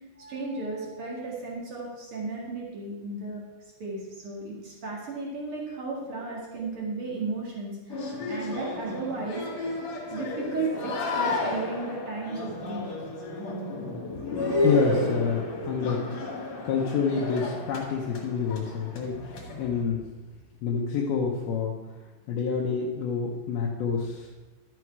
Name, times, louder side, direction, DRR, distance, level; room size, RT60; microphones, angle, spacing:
voice 1, 0.2-3.4 3.8-12.9, right 3 dB, 65° right, -3 dB, 1.3 m, -35 dB
sound 1, 7.9-19.8, left 2 dB, 50° left, 2.2 m, -32 dB
voice 2, 14.0-16.0 16.6-20.0 20.6-21.7 22.3-24.3, left 6 dB, 80° left, -2 dB, 2.2 m, -28 dB
12.0 x 7.8 x 4.6 m, 1.2 s
omnidirectional pair, 5.6 m